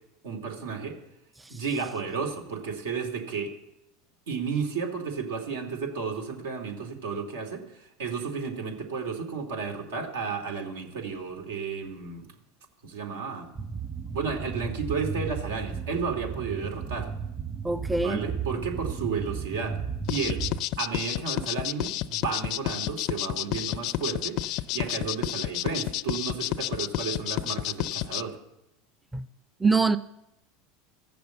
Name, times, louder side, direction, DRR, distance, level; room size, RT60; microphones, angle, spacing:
voice 1, 0.2-1.0 1.5-3.5 4.3-12.3 12.8-13.5 14.1-17.1 18.0-19.8 20.1-20.4 20.8-28.4, right 5 dB, 85° right, 2.6 m, -32 dB
sound 1, 13.5-20.6, right 6 dB, 30° right, 1.0 m, -34 dB
voice 2, 17.6-18.2 29.1-29.3 29.6-30.0, right 4 dB, 10° right, 0.5 m, -23 dB
sound 2, 20.1-28.2, left 15 dB, 55° left, 0.4 m, -30 dB
14.5 x 6.9 x 7.8 m
supercardioid pair, 105°, 0 cm